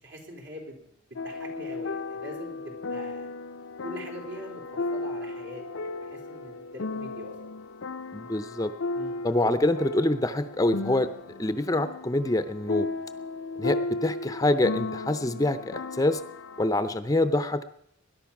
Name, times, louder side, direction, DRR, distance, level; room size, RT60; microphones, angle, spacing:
voice 1, 0.0-3.3 3.8-4.6 4.9-7.3 8.9-9.2, equal, 65° right, 1 dB, 4.3 m, -43 dB
sound 1, 1.2-16.7, left 3 dB, 75° left, 0.6 m, -35 dB
voice 2, 8.1-8.7 9.2-11.1 11.4-12.9 13.6-16.2 16.6-17.6, left 1 dB, 15° left, 11 dB, 0.6 m, -25 dB
20.5 x 11.0 x 6.0 m, 0.74 s
head